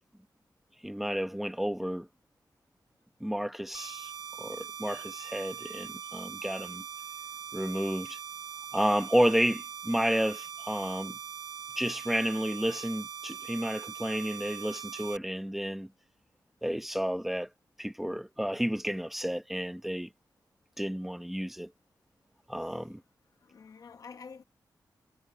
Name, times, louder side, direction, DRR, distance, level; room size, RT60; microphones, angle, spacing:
voice 1, 0.8-2.1 3.2-4.1 4.4-6.8 7.5-8.2 8.7-11.2 11.8-15.9 16.6-17.5 17.8-20.1 20.8-21.7 22.5-23.0, equal, 5° right, 1.0 m, -31 dB
sound 1, 3.7-15.2, right 7 dB, 75° right, 2.0 m, -42 dB
voice 2, 23.4-24.4, left 5 dB, 55° left, 1.2 m, -49 dB
wide cardioid pair, 165°, 7 cm